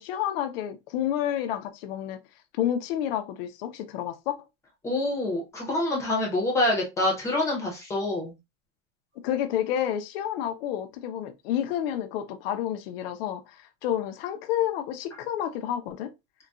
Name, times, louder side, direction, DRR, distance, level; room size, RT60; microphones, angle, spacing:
voice 1, 0.0-2.2 2.5-4.3 9.2-16.1, left 10 dB, 55° left, 0.5 m, -30 dB
voice 2, 4.8-8.3, left 1 dB, 10° left, 0.7 m, -26 dB
3.9 x 2.2 x 2.3 m
supercardioid pair, 170°, 35 cm